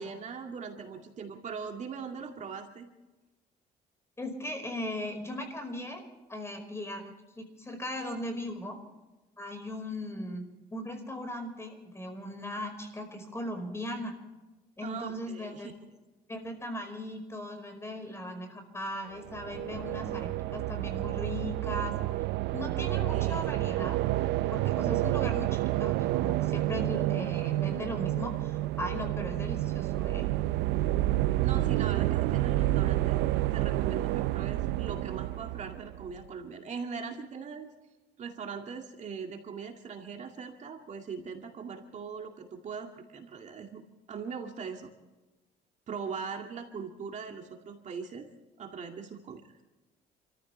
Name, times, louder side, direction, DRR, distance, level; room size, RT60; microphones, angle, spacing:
voice 1, 0.0-2.9 14.8-15.7 23.1-23.4 31.4-37.7 38.2-43.8 44.1-44.9 45.9-48.3 48.6-49.4, right 6 dB, 45° right, 3 dB, 2.2 m, -40 dB
voice 2, 4.2-6.0 6.3-8.8 9.4-10.4 10.7-14.1 14.8-15.7 16.3-21.9 22.5-24.0 24.5-30.2, left 1 dB, 15° left, 5 dB, 5.0 m, -38 dB
sound 1, 19.2-36.2, right 16 dB, 85° right, 0.5 m, -29 dB
29.0 x 14.5 x 3.4 m, 1.1 s
cardioid pair, 110°, 17 cm